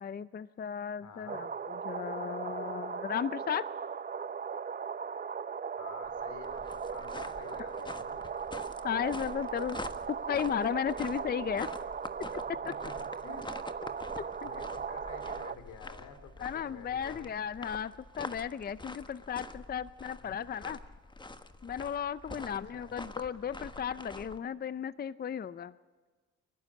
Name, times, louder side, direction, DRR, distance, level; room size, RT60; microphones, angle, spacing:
voice 1, 0.0-3.7 7.6-7.7 8.8-9.8 10.1-11.7 12.5-12.6 14.4-14.5 16.4-20.8 21.6-25.7, left 8 dB, 30° left, 16 dB, 0.6 m, -35 dB
voice 2, 1.0-1.4 5.8-8.2 12.4-13.5 14.4-17.3 20.2-20.3 22.3-22.9, left 5 dB, 80° left, 9 dB, 3.2 m, -50 dB
sound 1, 1.3-15.6, right 6 dB, 30° right, 0.7 m, -38 dB
sound 2, 6.0-24.4, left 2 dB, 15° left, 1.3 m, -46 dB
30.0 x 12.0 x 8.6 m, 1.4 s
cardioid pair, 90°, 30 cm